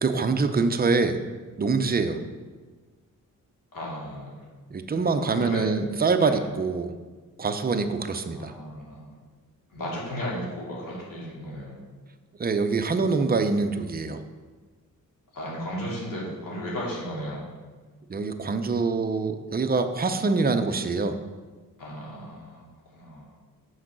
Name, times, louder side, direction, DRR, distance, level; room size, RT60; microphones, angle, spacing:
voice 1, 0.0-1.2 1.6-2.2 4.7-6.9 7.4-8.5 12.4-14.2 18.1-21.2, right 4 dB, 30° right, 7 dB, 0.6 m, -25 dB
voice 2, 3.7-4.5 5.0-5.6 6.2-6.5 8.1-9.2 9.7-11.8 15.3-17.5 21.8-22.7 22.9-23.3, equal, 85° left, -5 dB, 2.5 m, -35 dB
6.4 x 4.7 x 6.1 m, 1.4 s
cardioid pair, 95°, 33 cm